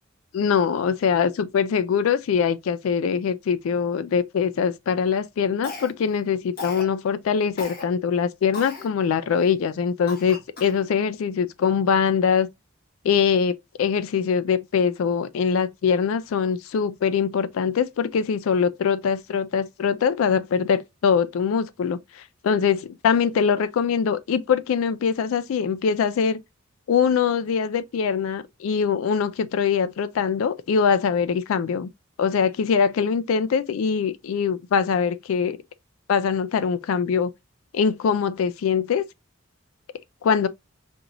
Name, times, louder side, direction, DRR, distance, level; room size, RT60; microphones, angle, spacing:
voice 1, 0.3-12.5 13.0-26.4 26.9-31.9 32.2-35.6 36.1-37.3 37.7-39.1 40.2-40.5, left 6 dB, 85° left, 0.3 m, -23 dB
Cough, 5.6-6.2 6.6-6.9 7.6-7.8 8.5-8.9 9.4-9.5 10.1-10.8, left 3 dB, 45° left, 1.5 m, -36 dB
5.2 x 2.9 x 2.5 m
head